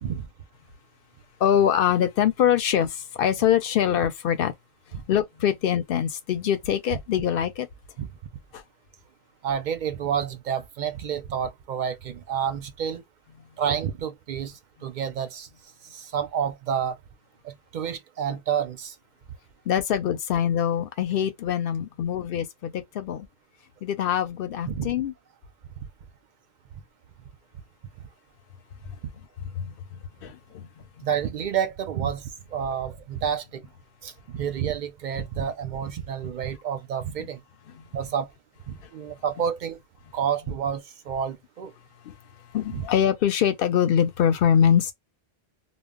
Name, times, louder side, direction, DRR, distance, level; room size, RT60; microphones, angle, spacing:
voice 1, 1.4-4.5 5.1-7.7 8.5-8.6 19.7-23.3 23.8-25.1 29.6-29.7 30.2-30.7 42.1-42.2 42.5-44.9, left 9 dB, 65° left, 0.7 m, -23 dB
voice 2, 9.4-13.0 13.6-15.5 15.9-17.0 17.4-18.9 24.7-24.9 31.0-33.6 34.0-37.4 37.9-38.3 38.7-39.8 40.1-41.7 42.7-42.9, right 8 dB, 60° right, 0.6 m, -29 dB
2.1 x 2.0 x 3.5 m
omnidirectional pair, 1.0 m